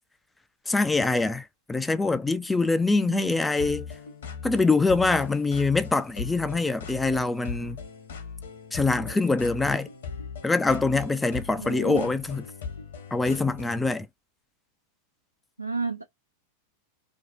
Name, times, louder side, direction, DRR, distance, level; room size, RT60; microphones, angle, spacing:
voice 1, 0.7-3.9 4.4-7.8 8.7-9.9 10.4-12.5 13.1-14.1, left 3 dB, 10° left, 0.3 m, -24 dB
voice 2, 3.0-3.3 11.6-12.1 15.6-16.1, right 3 dB, 85° right, 0.4 m, -32 dB
sound 1, 3.6-13.9, left 6 dB, 60° left, 0.9 m, -39 dB
2.7 x 2.3 x 2.5 m
figure-of-eight pair, 90°, 0 cm